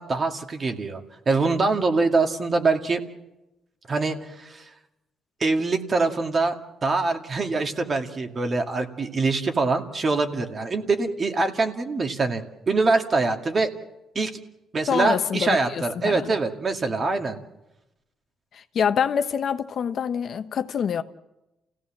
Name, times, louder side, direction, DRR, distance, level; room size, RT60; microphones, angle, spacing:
voice 1, 0.0-3.0 3.9-4.6 5.4-6.5 6.8-13.7 14.1-14.3 14.7-17.4, right 3 dB, 40° right, 2.2 m, -24 dB
voice 2, 14.9-16.2 18.5-21.0, left 7 dB, 60° left, 1.1 m, -26 dB
29.0 x 16.5 x 7.4 m
cardioid pair, 90°, 0 cm